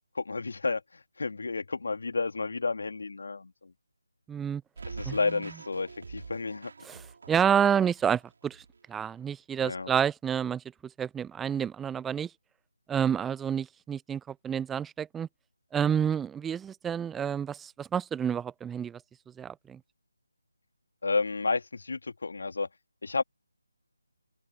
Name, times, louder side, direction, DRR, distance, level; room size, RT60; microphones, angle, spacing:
voice 1, 0.1-3.5 4.8-6.7 9.6-9.9 21.0-22.7 23.0-23.2, left 3 dB, 55° left, 1.6 m, -31 dB
voice 2, 4.3-4.6 5.1-5.2 6.8-8.6 8.9-10.6 11.0-12.3 12.9-15.3 15.7-19.0 19.4-19.8, right 8 dB, 5° right, 0.5 m, -29 dB
sound 1, 4.8-8.8 9.0-9.1, right 4 dB, 50° right, 3.7 m, -45 dB
open air
figure-of-eight pair, 155°, 0 cm